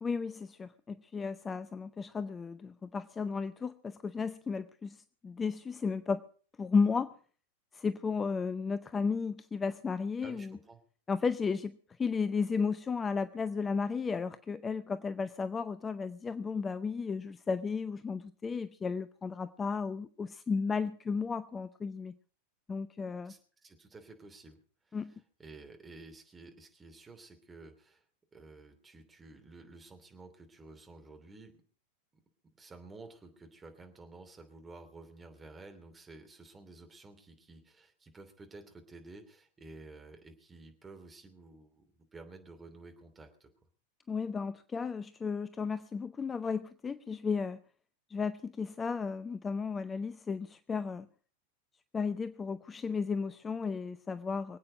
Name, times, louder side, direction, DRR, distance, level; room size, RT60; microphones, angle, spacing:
voice 1, 0.0-6.2 6.6-7.1 7.7-10.6 11.1-22.1 22.7-23.3 24.9-25.1 44.1-47.6 48.1-51.1 51.9-54.6, left 5 dB, 15° left, 13 dB, 0.6 m, -34 dB
voice 2, 10.2-10.8 23.2-24.6 24.8-28.0 28.3-31.6 32.6-43.5, right 3 dB, 15° right, 5 dB, 2.9 m, -52 dB
24.5 x 8.7 x 5.1 m, 0.43 s
figure-of-eight pair, 90°, 0 cm